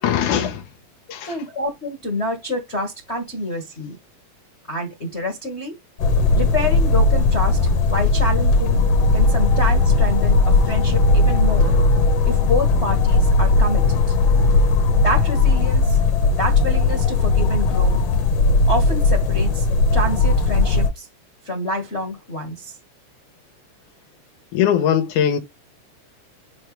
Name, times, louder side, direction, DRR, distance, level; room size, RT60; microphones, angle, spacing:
voice 1, 0.0-0.6 1.1-1.4 24.5-25.4, left 9 dB, 85° left, 2.6 m, -20 dB
voice 2, 1.2-4.0 4.7-5.8 6.3-8.8 9.1-11.8 12.2-14.2 15.0-16.0 16.3-18.0 18.7-19.7 19.9-21.1 21.4-22.8, left 1 dB, 35° left, 1.1 m, -27 dB
sound 1, 6.0-20.9, left 3 dB, 60° left, 2.0 m, -17 dB
6.4 x 5.6 x 3.1 m
omnidirectional pair, 3.6 m